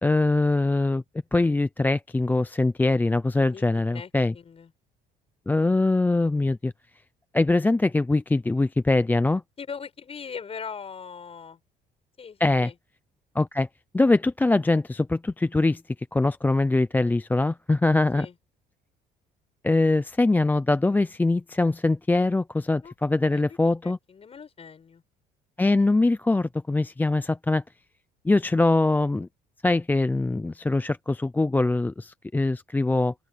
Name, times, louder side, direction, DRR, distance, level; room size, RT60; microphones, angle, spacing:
voice 1, 0.0-1.0 1.3-4.3 5.5-6.7 7.3-9.4 12.4-12.7 13.4-13.7 13.9-15.8 16.1-18.3 19.6-24.0 25.6-27.6 28.2-29.3 29.6-33.1, left 2 dB, 10° left, 0.5 m, -23 dB
voice 2, 3.4-4.7 9.6-11.6 12.2-12.7 18.1-18.3 22.8-22.9 23.2-23.6 23.8-25.0, left 6 dB, 35° left, 6.6 m, -40 dB
open air
cardioid pair, 110°, 17 cm